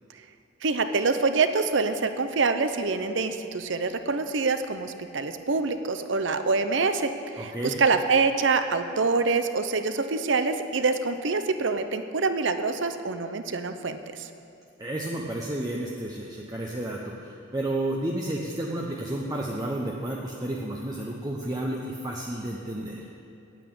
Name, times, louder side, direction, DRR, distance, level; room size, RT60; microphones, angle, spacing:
voice 1, 0.6-14.3, right 4 dB, 65° right, 9 dB, 0.7 m, -25 dB
voice 2, 7.4-7.8 14.8-23.0, right 1 dB, 20° right, -2 dB, 0.7 m, -31 dB
9.1 x 8.4 x 8.7 m, 2.6 s
head